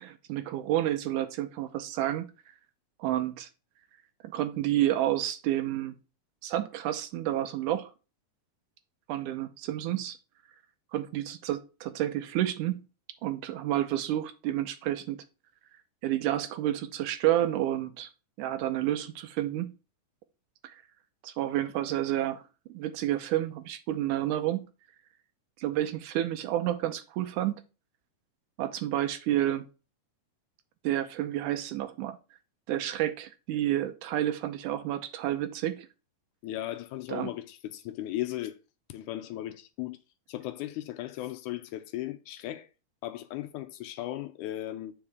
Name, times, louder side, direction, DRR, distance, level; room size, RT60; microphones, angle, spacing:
voice 1, 0.0-2.3 3.0-3.5 4.2-6.0 6.4-7.9 9.1-10.2 10.9-12.8 13.2-15.2 16.0-18.1 18.4-19.7 20.6-20.7 21.2-22.4 22.7-24.7 25.6-27.6 28.6-29.6 30.8-32.2 32.7-35.9 37.1-37.3, right 13 dB, 80° right, 2.1 m, -30 dB
voice 2, 36.4-38.6 38.9-40.0 40.3-42.7 43.0-44.9, left 14 dB, 80° left, 1.9 m, -36 dB
8.6 x 5.1 x 3.5 m
omnidirectional pair, 3.8 m